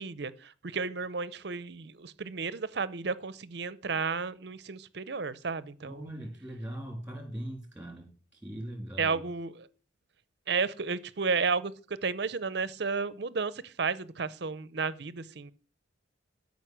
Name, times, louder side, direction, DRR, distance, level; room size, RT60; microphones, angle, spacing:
voice 1, 0.0-6.1 9.0-9.7 10.5-15.5, right 5 dB, 55° right, 0.6 m, -32 dB
voice 2, 5.8-8.1 8.4-9.2, right 1 dB, 5° right, 3.1 m, -40 dB
12.5 x 5.4 x 6.1 m
head